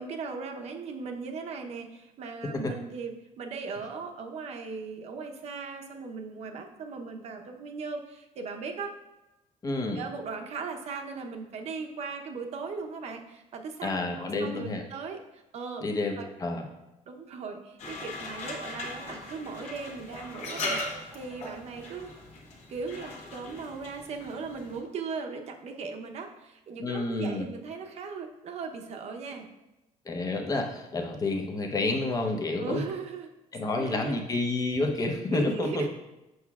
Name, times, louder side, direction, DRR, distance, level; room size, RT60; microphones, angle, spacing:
voice 1, 0.0-8.9 10.0-15.8 16.2-16.3 17.1-20.8 21.1-22.1 22.7-29.5 32.6-33.3 33.6-34.2 35.3-35.9, right 4 dB, 50° right, 3 dB, 0.8 m, -38 dB
voice 2, 9.6-10.0 13.8-14.8 15.8-16.7 26.8-27.5 30.0-32.8 33.5-35.8, left 2 dB, 25° left, 3 dB, 0.8 m, -29 dB
sound 1, 17.8-24.8, left 2 dB, 50° left, 1.3 m, -39 dB
7.9 x 5.8 x 2.4 m, 0.97 s
cardioid pair, 135°, 14 cm